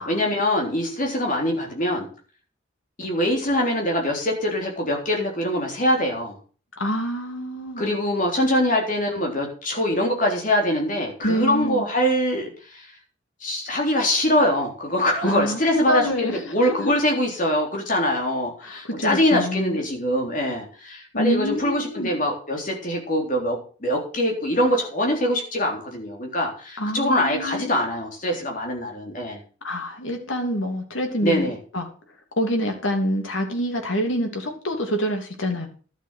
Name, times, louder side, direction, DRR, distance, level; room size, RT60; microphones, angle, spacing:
voice 1, 0.0-2.1 3.0-6.4 7.8-12.9 13.4-29.4 31.2-31.6, left 1 dB, 40° left, 1 dB, 3.7 m, -23 dB
voice 2, 6.8-7.8 11.2-11.9 15.2-16.9 18.6-19.8 21.1-22.1 26.8-27.8 29.6-31.5 31.7-31.9 32.4-35.7, equal, 85° left, 3 dB, 3.0 m, -26 dB
11.5 x 7.2 x 6.5 m, 0.39 s
head